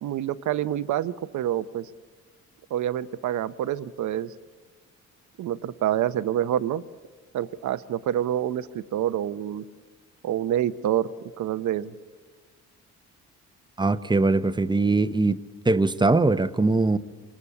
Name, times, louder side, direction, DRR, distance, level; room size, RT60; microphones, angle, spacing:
voice 1, 0.0-1.9 2.7-4.3 5.4-6.8 7.3-9.6 10.2-11.1 11.4-11.9, right 11 dB, 70° right, 0.8 m, -27 dB
voice 2, 13.8-15.4 15.7-17.0, right 3 dB, 15° right, 0.8 m, -21 dB
25.5 x 20.0 x 9.7 m
cardioid pair, 90°, 30 cm